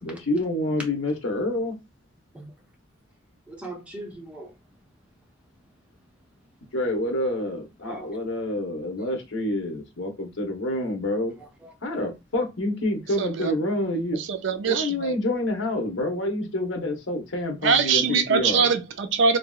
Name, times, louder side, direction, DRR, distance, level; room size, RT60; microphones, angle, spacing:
voice 1, 0.0-1.8 6.7-11.3 11.8-14.2 14.7-18.7, left 1 dB, 85° left, 0.9 m, -27 dB
voice 2, 3.5-4.5 7.8-8.1 9.0-9.1 11.4-12.0, right 2 dB, 5° right, 0.7 m, -41 dB
voice 3, 13.2-13.5 14.1-15.2 17.6-19.4, right 5 dB, 70° right, 0.4 m, -23 dB
2.8 x 2.6 x 2.3 m
head